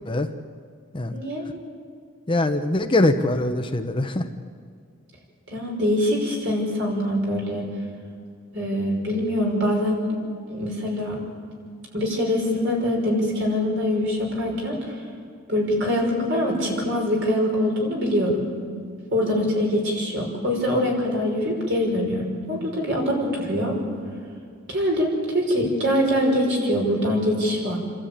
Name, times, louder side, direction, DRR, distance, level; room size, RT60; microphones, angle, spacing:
voice 1, 1.1-1.4 5.5-7.7 8.5-10.0 10.5-11.2 11.9-14.9 15.5-18.4 19.1-23.8 24.7-27.8, equal, 60° right, 0 dB, 5.7 m, -23 dB
voice 2, 2.3-4.3, left 2 dB, 25° left, 7 dB, 0.8 m, -22 dB
28.0 x 13.0 x 8.8 m, 2.1 s
head